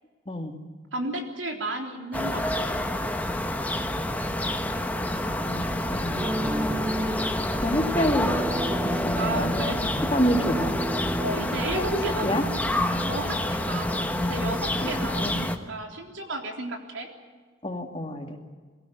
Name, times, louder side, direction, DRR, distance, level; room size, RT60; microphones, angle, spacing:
voice 1, 0.3-0.6 5.4-6.2 7.6-9.6 10.1-10.7 11.7-12.4 14.8-14.9 15.2-15.4 17.6-18.4, left 1 dB, 30° left, 3 dB, 2.3 m, -28 dB
voice 2, 0.9-2.9 6.6-7.3 9.1-9.8 11.2-17.1, right 2 dB, 80° right, 3 dB, 3.7 m, -34 dB
sound 1, 2.1-15.6, left 1 dB, 10° left, 1.2 m, -28 dB
sound 2, 6.2-12.2, right 1 dB, 15° right, 0.8 m, -33 dB
22.5 x 16.5 x 9.2 m, 1.5 s
head